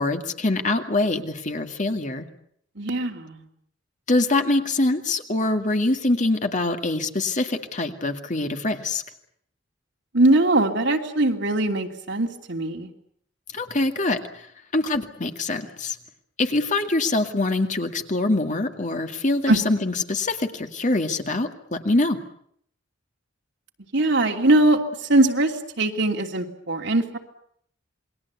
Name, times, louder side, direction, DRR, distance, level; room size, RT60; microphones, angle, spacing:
voice 1, 0.0-2.3 4.1-9.0 13.5-14.5 14.7-16.0 16.4-22.2, left 2 dB, 40° left, 6 dB, 2.2 m, -24 dB
voice 2, 2.8-3.4 10.1-12.9 19.5-19.6 23.9-27.2, right 2 dB, 65° right, 3 dB, 2.9 m, -21 dB
28.0 x 21.5 x 8.3 m, 0.68 s
head